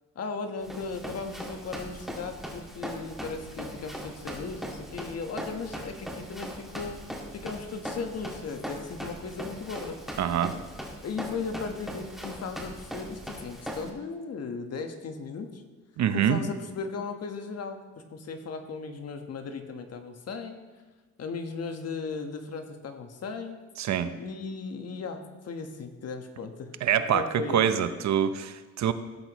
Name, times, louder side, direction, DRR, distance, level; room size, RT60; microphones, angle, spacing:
voice 1, 0.1-7.0 7.3-10.0 11.0-15.6 16.1-17.8 18.1-20.5 21.2-23.6 24.2-26.7 27.1-27.8, left 4 dB, 55° left, 6 dB, 1.3 m, -36 dB
Run, 0.6-13.9, equal, ahead, 1.9 m, -40 dB
voice 2, 10.2-10.5 16.0-16.4 23.8-24.1 26.8-28.9, right 9 dB, 65° right, 11 dB, 0.8 m, -25 dB
16.0 x 8.0 x 3.1 m, 1.3 s
cardioid pair, 90°, 30 cm